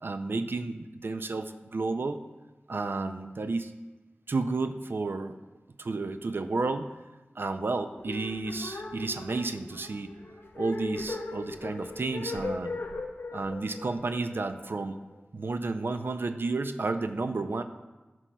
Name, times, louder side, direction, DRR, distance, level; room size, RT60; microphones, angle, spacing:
voice 1, 0.0-2.2 2.7-3.7 4.3-5.4 5.8-6.9 7.4-10.1 10.6-12.8 13.3-15.0 15.3-17.6, right 3 dB, 65° right, 9 dB, 0.4 m, -31 dB
sound 1, 8.0-15.2, left 2 dB, 70° left, 0.5 m, -38 dB
11.0 x 6.0 x 2.2 m, 1.2 s
wide cardioid pair, 70°, 4 cm